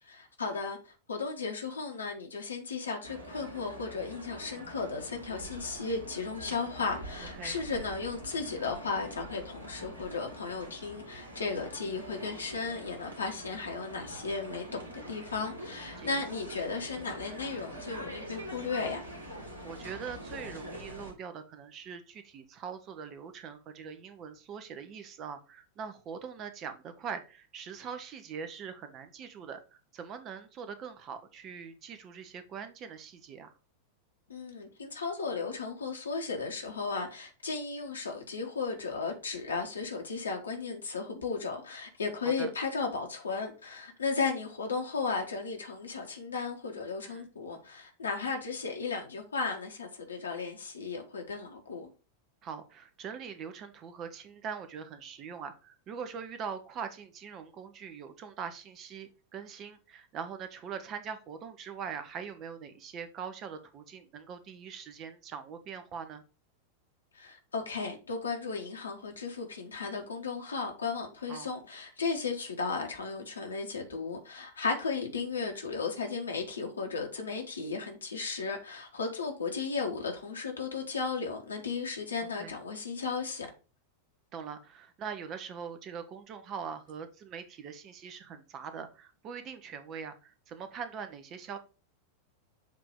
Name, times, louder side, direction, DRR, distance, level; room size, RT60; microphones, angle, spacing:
voice 1, 0.0-19.0 34.3-51.9 67.1-83.5, left 4 dB, 75° left, 1.5 m, -35 dB
sound 1, 3.0-21.1, equal, 75° right, 2.1 m, -45 dB
voice 2, 19.6-33.5 42.2-42.5 47.0-47.2 52.4-66.2 71.3-71.5 82.2-82.6 84.3-91.6, right 6 dB, 35° right, 0.9 m, -42 dB
7.3 x 3.0 x 4.9 m
figure-of-eight pair, 90°, 0 cm